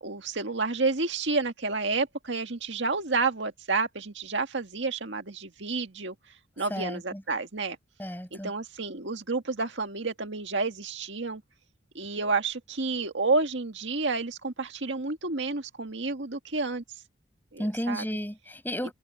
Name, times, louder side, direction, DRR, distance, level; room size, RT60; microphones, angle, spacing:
voice 1, 0.0-6.2 6.6-7.8 8.3-11.4 11.9-16.8 17.5-18.0, right 3 dB, 70° right, 1.9 m, -30 dB
voice 2, 6.7-7.2 8.0-8.5 17.6-18.9, equal, 10° left, 7.9 m, -33 dB
head